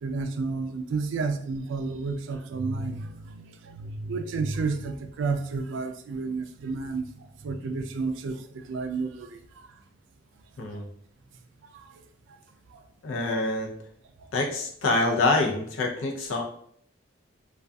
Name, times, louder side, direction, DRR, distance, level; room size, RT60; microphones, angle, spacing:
voice 1, 0.0-7.0 7.4-8.4 8.7-9.4 11.7-11.9, right 4 dB, 65° right, 7 dB, 0.3 m, -31 dB
voice 2, 13.0-13.7 14.3-16.4, left 2 dB, 85° left, 1 dB, 0.5 m, -26 dB
2.5 x 2.3 x 2.2 m, 0.64 s
head